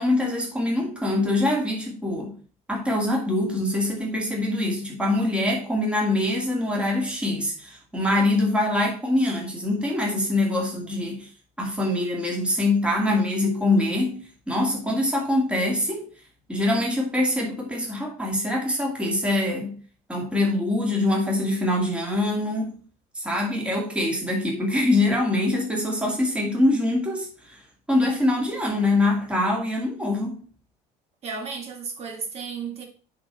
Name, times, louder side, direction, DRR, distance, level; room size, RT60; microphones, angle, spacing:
voice 1, 0.0-2.4 2.7-11.3 11.6-16.1 16.5-19.8 20.1-22.8 23.2-27.6 27.9-30.4, left 1 dB, 5° right, 2.2 m, -24 dB
voice 2, 31.2-32.9, right 5 dB, 45° right, 2.1 m, -33 dB
9.5 x 4.1 x 4.3 m
cardioid pair, 140°, 15 cm